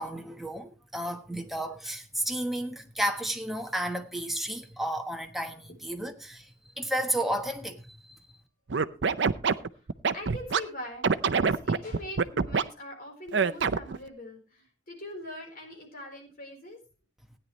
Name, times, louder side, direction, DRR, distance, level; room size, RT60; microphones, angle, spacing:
voice 1, 0.0-6.5 6.8-8.0, right 1 dB, ahead, 1.2 m, -32 dB
Scratching (performance technique), 8.7-10.6 11.0-12.6 13.3-14.0, right 5 dB, 75° right, 0.6 m, -25 dB
voice 2, 10.1-16.8, left 1 dB, 50° left, 4.2 m, -42 dB
16.5 x 10.0 x 3.1 m
head